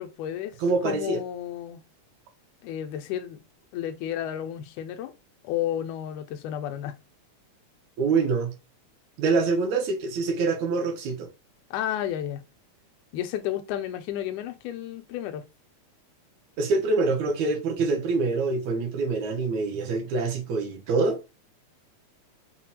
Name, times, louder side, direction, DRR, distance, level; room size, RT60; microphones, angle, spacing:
voice 1, 0.0-0.6 0.8-1.8 2.6-3.4 3.7-5.1 5.4-7.0 11.7-12.4 13.1-15.4, left 11 dB, 85° left, 2.0 m, -32 dB
voice 2, 0.6-1.2 8.0-8.5 9.2-11.3 16.6-21.2, right 4 dB, 75° right, 2.1 m, -25 dB
5.7 x 2.2 x 2.8 m
omnidirectional pair, 3.4 m